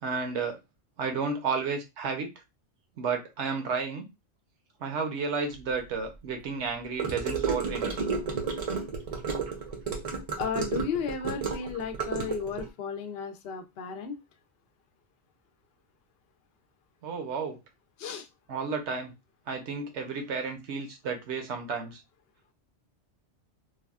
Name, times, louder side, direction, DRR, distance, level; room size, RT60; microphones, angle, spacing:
voice 1, 0.0-0.6 1.0-2.3 3.0-4.1 4.8-8.1 17.0-17.6 18.5-19.1 19.5-22.0, right 5 dB, 70° right, 5 dB, 1.0 m, -32 dB
Gurgling / Car passing by / Sink (filling or washing), 7.0-12.7, right 5 dB, 40° right, 0.6 m, -32 dB
voice 2, 10.4-14.2 18.0-18.3, left 6 dB, 65° left, 7 dB, 0.7 m, -34 dB
3.3 x 2.3 x 2.3 m, 0.23 s
omnidirectional pair, 1.2 m